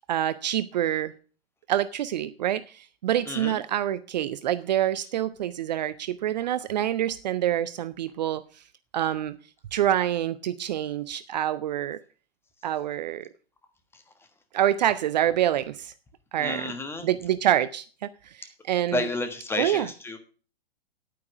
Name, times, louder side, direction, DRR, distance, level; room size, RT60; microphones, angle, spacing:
voice 1, 0.1-1.1 1.7-8.4 8.9-9.3 9.7-12.0 12.6-13.3 14.5-15.9 16.3-16.7 17.0-17.8 18.4-19.0 19.6-19.9, right 11 dB, 45° right, 0.6 m, -26 dB
voice 2, 3.3-3.6 13.9-14.0 16.4-17.1 18.9-20.2, left 2 dB, 10° left, 1.4 m, -31 dB
9.5 x 9.1 x 5.9 m
figure-of-eight pair, 110°, 30 cm